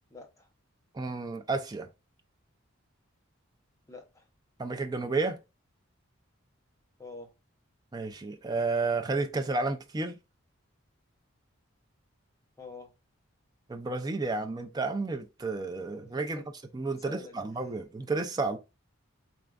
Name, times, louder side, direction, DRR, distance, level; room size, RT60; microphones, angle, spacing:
voice 1, 0.1-0.5 3.9-4.3 7.0-7.3 12.6-12.9 16.2-16.4 17.0-17.9, left 2 dB, 15° left, 0.7 m, -46 dB
voice 2, 0.9-1.9 4.6-5.4 7.9-10.2 13.7-16.4 16.7-18.6, right 3 dB, 20° right, 0.4 m, -31 dB
4.2 x 3.4 x 2.4 m
head